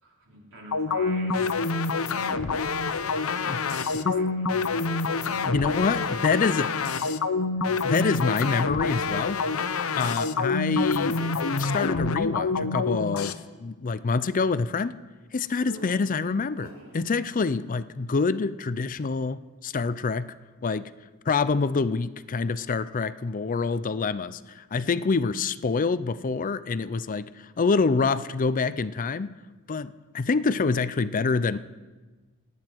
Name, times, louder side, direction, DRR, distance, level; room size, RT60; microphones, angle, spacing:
voice 1, 0.0-1.8 2.4-2.7 3.0-3.1 3.4-5.7 6.1-7.0, right 1 dB, 65° right, -3 dB, 4.4 m, -46 dB
sound 1, 0.7-13.3, left 4 dB, 85° left, 0.8 m, -27 dB
voice 2, 5.4-6.7 7.0-7.1 7.8-9.4 9.9-11.2 11.6-13.3 13.6-15.0 15.3-20.3 20.6-20.9 21.3-29.3 29.7-31.6, left 4 dB, 40° left, 14 dB, 0.5 m, -26 dB
sound 2, 15.6-17.0 17.3-17.8, right 2 dB, 80° right, 3.4 m, -47 dB
28.0 x 9.6 x 4.6 m, 1.3 s
head